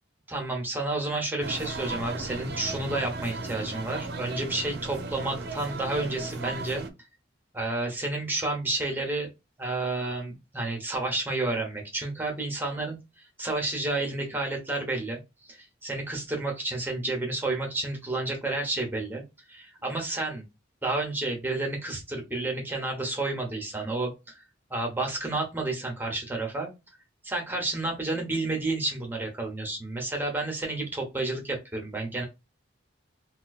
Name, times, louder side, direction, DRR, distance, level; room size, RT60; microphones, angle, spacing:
voice 1, 0.3-6.8 7.5-9.3 9.6-19.2 19.5-20.4 20.8-24.4 24.7-26.7 27.2-32.2, right 2 dB, 10° right, 1 dB, 0.8 m, -30 dB
sound 1, 1.4-6.9, right 3 dB, 55° right, 0.5 m, -36 dB
3.7 x 2.3 x 2.3 m, 0.25 s
head